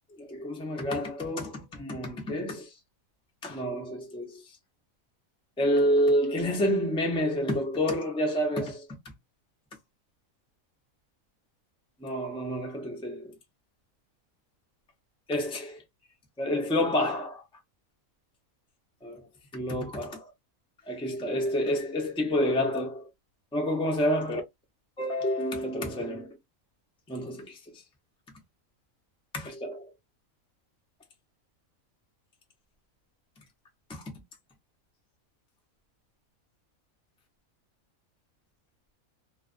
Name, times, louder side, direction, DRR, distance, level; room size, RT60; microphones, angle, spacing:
voice 1, 0.2-2.7 3.4-4.4 5.6-8.9 12.0-13.3 15.3-15.8 16.4-17.4 19.0-19.2 19.5-20.2 20.9-23.1 23.5-24.4 25.0-26.4 27.1-27.6 29.3-29.9 33.9-34.0, equal, 10° left, 0.3 m, -28 dB
2.3 x 2.3 x 2.4 m
omnidirectional pair, 1.5 m